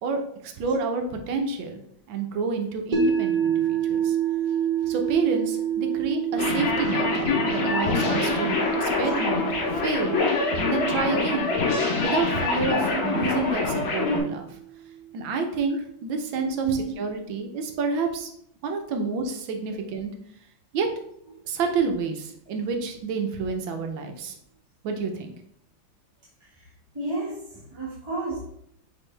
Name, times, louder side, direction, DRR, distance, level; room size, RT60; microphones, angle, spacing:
voice 1, 0.0-1.8 2.1-4.2 4.9-7.1 7.5-9.5 9.7-10.2 10.6-11.5 12.0-14.5 15.1-16.7 17.0-18.3 18.6-20.1 20.7-20.9 21.5-24.3 24.8-25.3, right 4 dB, 75° right, 5 dB, 1.6 m, -29 dB
sound 1, 2.9-15.0, right 8 dB, 55° right, 1.7 m, -29 dB
sound 2, 6.4-14.2, left 4 dB, 80° left, 2.1 m, -25 dB
voice 2, 10.2-10.6 12.9-13.0 16.6-16.9 26.4-28.4, right 3 dB, 15° right, -8 dB, 1.3 m, -32 dB
6.3 x 4.6 x 3.3 m, 0.69 s
omnidirectional pair, 2.2 m